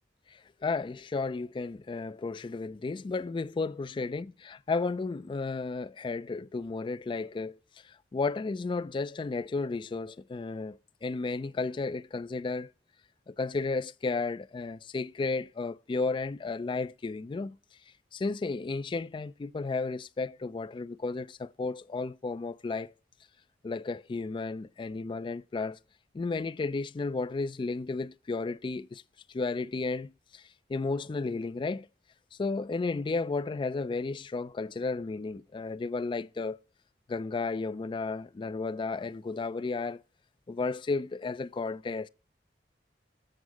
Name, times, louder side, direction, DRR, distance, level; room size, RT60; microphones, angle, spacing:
voice 1, 0.3-7.6 7.8-12.7 13.3-17.6 18.1-22.9 23.6-25.8 26.1-29.0 29.3-31.9 32.4-36.6 37.1-40.0 40.5-42.1, left 3 dB, 30° left, 0.3 m, -33 dB
7.9 x 7.3 x 4.7 m
head